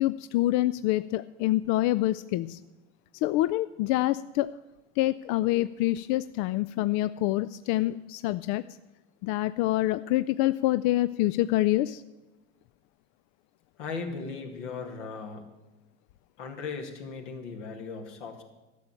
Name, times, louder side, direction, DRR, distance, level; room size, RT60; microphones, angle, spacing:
voice 1, 0.0-2.6 3.1-4.5 5.0-8.6 9.2-12.0, left 16 dB, 55° left, 15 dB, 0.4 m, -26 dB
voice 2, 13.8-15.5 16.4-18.4, left 4 dB, 80° left, 3 dB, 2.2 m, -37 dB
13.0 x 6.9 x 8.9 m, 1.1 s
hypercardioid pair, 80°, 35 cm